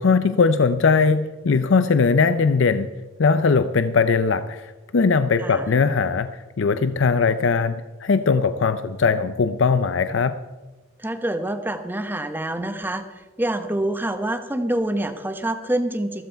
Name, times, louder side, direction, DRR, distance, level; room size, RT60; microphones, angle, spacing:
voice 1, 0.0-2.9 3.2-10.3, left 5 dB, 75° left, 11 dB, 0.5 m, -20 dB
voice 2, 11.0-16.2, right 1 dB, 10° right, 8 dB, 1.0 m, -26 dB
14.0 x 13.0 x 4.6 m, 1.3 s
head